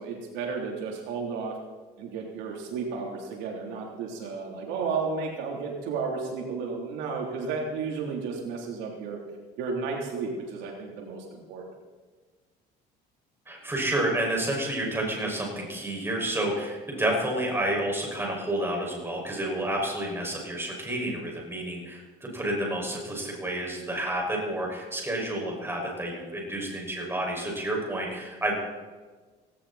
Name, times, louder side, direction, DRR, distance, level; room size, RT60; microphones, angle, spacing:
voice 1, 0.0-1.6 2.0-9.2 9.6-11.6, right 4 dB, 85° right, 0 dB, 3.6 m, -33 dB
voice 2, 13.5-28.5, right 1 dB, 15° right, -1 dB, 6.2 m, -30 dB
17.5 x 17.0 x 4.4 m, 1.4 s
cardioid pair, 105°, 18 cm